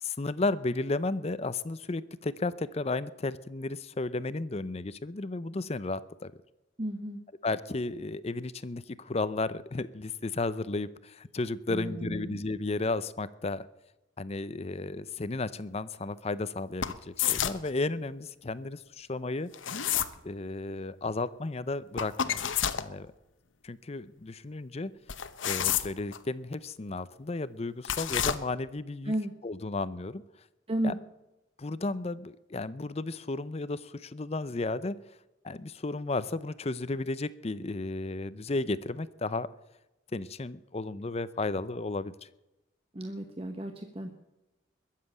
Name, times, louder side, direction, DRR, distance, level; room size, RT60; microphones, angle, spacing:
voice 1, 0.0-6.3 7.4-13.7 14.2-19.5 20.2-22.4 22.7-23.1 23.6-24.9 25.4-29.1 29.4-30.2 30.8-30.9 31.6-35.0 35.4-39.5 40.1-42.3, left 3 dB, 30° left, 16 dB, 0.6 m, -33 dB
voice 2, 6.8-7.2 11.7-12.4 29.0-29.3 30.7-31.0 42.9-44.1, right 1 dB, 30° right, 4 dB, 1.2 m, -33 dB
sound 1, 16.8-17.7 19.5-20.1 22.0-22.9 25.1-26.2 27.8-28.4, left 9 dB, 85° left, 1.0 m, -29 dB
21.5 x 7.5 x 8.7 m, 0.98 s
head